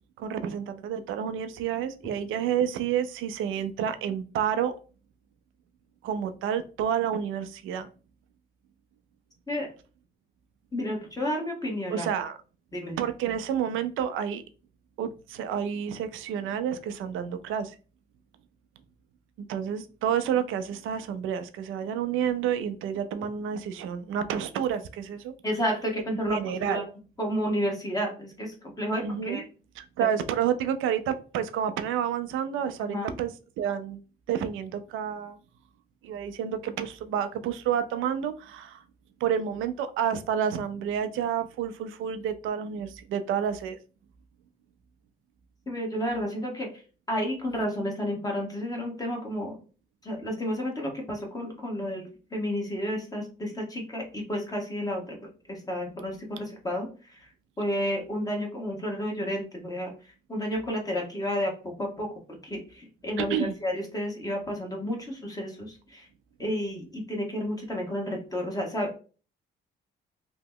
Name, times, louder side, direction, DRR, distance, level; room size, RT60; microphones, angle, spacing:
voice 1, 0.2-4.8 6.0-7.9 11.9-12.4 13.0-14.4 15.0-17.7 19.5-25.3 26.3-26.8 28.9-29.4 29.8-34.0 34.3-35.4 36.0-38.8 39.2-43.8 63.2-63.5, right 8 dB, 85° right, 10 dB, 0.4 m, -29 dB
voice 2, 10.7-12.1 12.7-13.0 25.4-26.4 26.7-26.8 27.2-29.4 30.0-30.1 32.9-33.2 45.7-46.8 47.1-49.6 50.0-57.3 57.6-63.4 63.6-66.1 66.4-69.0, equal, 20° left, 0 dB, 1.0 m, -31 dB
2.9 x 2.0 x 3.6 m, 0.36 s
cardioid pair, 90°, 20 cm